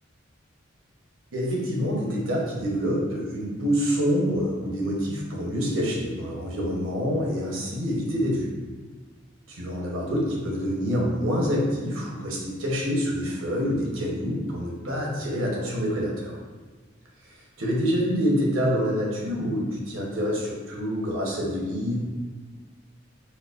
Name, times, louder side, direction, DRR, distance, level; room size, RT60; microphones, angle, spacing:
voice 1, 1.3-8.5 9.5-16.4 17.3-22.0, equal, 90° right, -3 dB, 0.9 m, -26 dB
4.4 x 2.1 x 2.5 m, 1.4 s
head